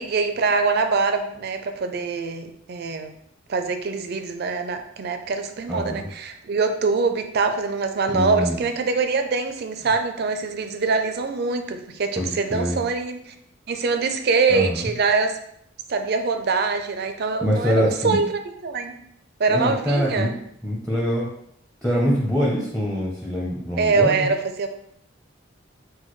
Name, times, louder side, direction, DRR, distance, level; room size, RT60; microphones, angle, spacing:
voice 1, 0.0-3.1 3.5-13.3 13.7-15.4 15.9-18.9 19.4-20.3 23.8-24.7, right 4 dB, 50° right, 7 dB, 0.4 m, -24 dB
voice 2, 5.7-6.1 8.1-8.6 12.2-12.8 14.5-14.9 17.4-18.2 19.5-20.3 20.6-21.3 21.8-24.3, equal, 5° left, -4 dB, 0.6 m, -24 dB
6.1 x 2.2 x 3.1 m, 0.71 s
head